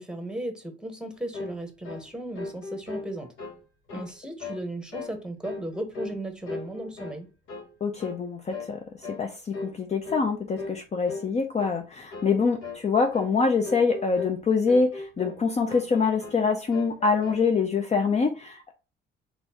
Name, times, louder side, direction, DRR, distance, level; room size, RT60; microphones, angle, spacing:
voice 1, 0.0-3.3 3.9-7.3, right 1 dB, 5° right, 1.2 m, -36 dB
sound 1, 1.3-1.6 1.8-2.1 2.4-3.6 3.9-4.1 4.4-4.7 4.9-5.2 5.4-6.2 6.5-7.2 7.5-7.7 8.0-8.2 8.5-8.7 9.0-9.2 9.5-9.8 10.1-10.3 10.6-10.8 11.1-11.3 11.6-11.8 12.1-12.4 12.6-12.8 13.1-13.3 13.6-14.4 14.7-15.4 15.7-16.4 16.7-17.5, left 3 dB, 80° left, 1.2 m, -38 dB
voice 2, 7.8-8.8 9.1-18.7, left 4 dB, 35° left, 0.5 m, -25 dB
4.2 x 3.5 x 2.9 m
cardioid pair, 90°, 20 cm